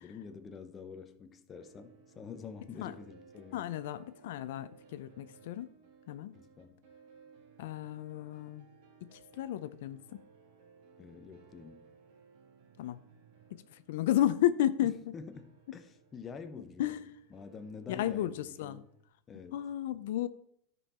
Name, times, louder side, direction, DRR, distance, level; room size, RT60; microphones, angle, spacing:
voice 1, 0.0-3.7 6.3-6.8 11.0-11.9 14.8-16.9 17.3-18.9 19.3-19.6, left 5 dB, 20° left, 0.8 m, -47 dB
sound 1, 1.5-19.1, right 5 dB, 60° right, 2.3 m, -61 dB
voice 2, 3.5-5.7 6.1-6.3 7.6-8.7 9.0-10.2 12.8-13.0 13.5-15.1 16.8-17.0 17.9-18.8 19.5-20.3, left 12 dB, 70° left, 0.5 m, -33 dB
13.0 x 5.4 x 4.3 m
supercardioid pair, 160°, 0 cm